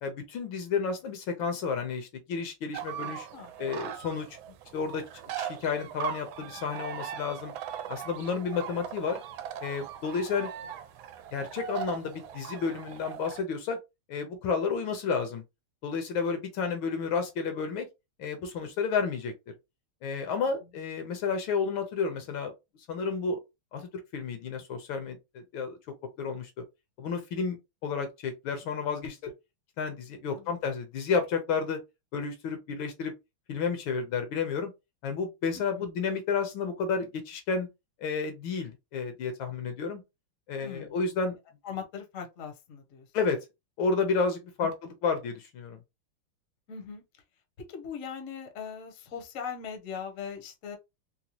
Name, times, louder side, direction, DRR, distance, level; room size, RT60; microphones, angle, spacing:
voice 1, 0.0-3.3 3.6-4.4 4.7-7.5 7.9-9.2 9.6-10.5 11.3-13.8 14.1-15.4 15.8-17.9 18.2-19.3 20.0-22.5 22.9-23.4 23.7-25.8 26.2-26.5 27.0-27.6 27.8-29.3 29.8-31.8 32.1-33.1 33.5-34.7 35.0-37.7 38.0-40.0 40.5-41.4 43.1-43.4 43.8-45.8, left 5 dB, 75° left, 1.5 m, -31 dB
sound 1, 2.7-13.4, right 10 dB, 75° right, 1.3 m, -39 dB
voice 2, 3.3-3.7 10.4-10.5 16.9-17.0 20.4-20.5 30.3-30.6 35.5-35.9 40.6-41.0 41.6-43.1 46.7-47.0 47.6-50.8, left 6 dB, 50° left, 1.0 m, -40 dB
4.0 x 2.2 x 2.9 m
omnidirectional pair, 2.3 m